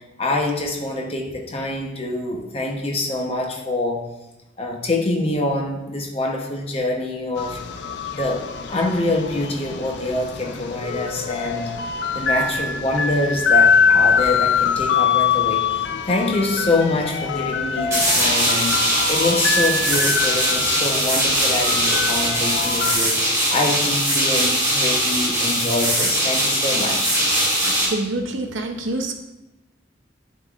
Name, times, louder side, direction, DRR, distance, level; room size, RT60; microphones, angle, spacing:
voice 1, 0.0-4.0 4.6-7.6 8.1-11.7 12.1-18.8 19.1-27.2, left 2 dB, 30° left, 0 dB, 0.9 m, -25 dB
sound 1, 7.4-22.9, left 6 dB, 65° left, 0.4 m, -23 dB
sound 2, 17.9-27.9, right 1 dB, 15° right, 2.2 m, -21 dB
voice 2, 27.6-29.1, right 2 dB, 85° right, 5 dB, 0.7 m, -27 dB
10.0 x 3.9 x 2.5 m, 1.0 s
head